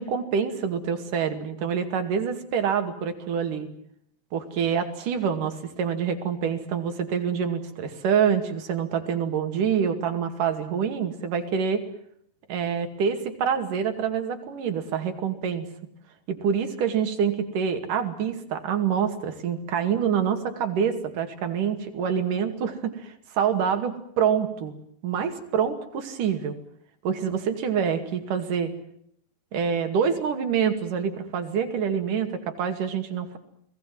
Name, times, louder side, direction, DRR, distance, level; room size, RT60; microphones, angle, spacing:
voice 1, 0.0-3.7 4.3-11.8 12.5-15.7 16.3-24.7 25.0-26.6 27.0-28.7 29.5-33.4, right 7 dB, 65° right, 6 dB, 3.8 m, -26 dB
30.0 x 20.0 x 7.7 m, 0.69 s
omnidirectional pair, 4.1 m